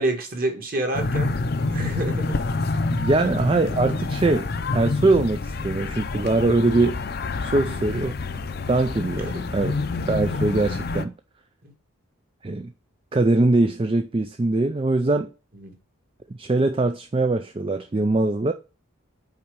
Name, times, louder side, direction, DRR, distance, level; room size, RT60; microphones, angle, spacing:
voice 1, 0.0-1.3 1.7-2.4 7.6-7.8 9.3-9.4 15.6-15.7, right 1 dB, 45° right, 1.8 m, -28 dB
sound 1, 0.9-11.0, left 3 dB, 45° left, 0.6 m, -27 dB
voice 2, 2.9-7.0 7.4-8.1 8.7-9.7 10.1-11.1 12.4-12.7 13.1-15.3 16.4-18.5, right 2 dB, 25° right, 0.4 m, -22 dB
5.7 x 4.5 x 5.2 m
head